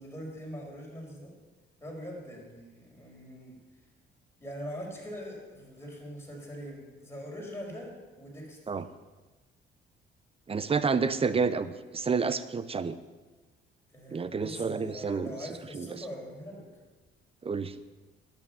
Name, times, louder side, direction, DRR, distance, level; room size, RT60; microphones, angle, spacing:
voice 1, 0.0-1.3 1.8-3.6 4.4-7.9 8.2-8.6 13.9-16.6, equal, 10° left, -2 dB, 5.1 m, -42 dB
voice 2, 10.5-13.0 14.1-15.3 15.7-15.9 17.4-17.7, right 5 dB, 30° right, 14 dB, 0.7 m, -29 dB
10.5 x 9.2 x 7.0 m, 1.2 s
cardioid pair, 90°, 20 cm